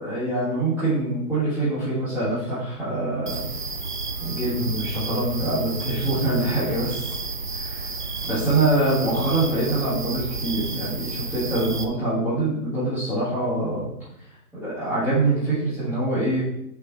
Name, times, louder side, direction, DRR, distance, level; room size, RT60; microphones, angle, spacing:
voice 1, 0.0-3.5 4.2-7.2 7.5-7.9 8.3-13.9 14.5-16.4, right 2 dB, 5° right, -16 dB, 3.3 m, -24 dB
sound 1, 3.3-11.8, right 3 dB, 35° right, 0.4 m, -31 dB
7.8 x 5.9 x 4.5 m, 0.80 s
figure-of-eight pair, 145°, 46 cm